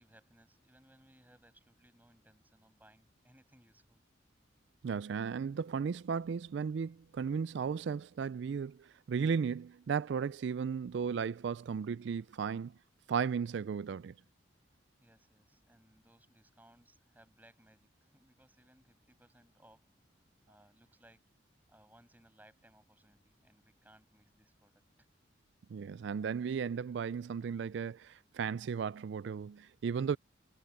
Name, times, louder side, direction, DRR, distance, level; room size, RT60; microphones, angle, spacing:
voice 1, 0.0-4.0 15.0-21.3 21.7-25.1, right 1 dB, 10° right, 6.6 m, -64 dB
voice 2, 4.8-12.7 13.1-14.1 25.7-30.2, right 6 dB, 65° right, 0.3 m, -35 dB
head